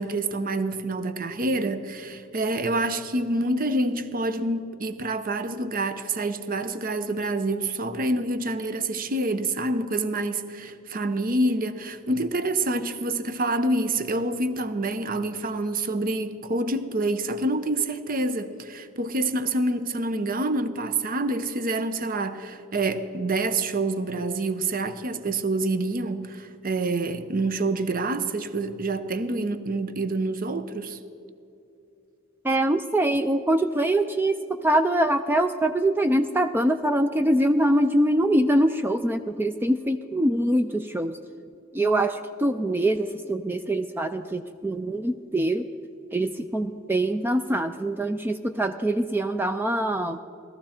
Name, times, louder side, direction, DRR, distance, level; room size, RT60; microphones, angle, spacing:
voice 1, 0.0-31.0, right 2 dB, 45° right, 0.7 m, -27 dB
voice 2, 32.4-34.4 34.6-41.1 41.7-45.6 46.1-50.2, right 1 dB, 10° right, 0.3 m, -24 dB
18.0 x 13.5 x 4.3 m
head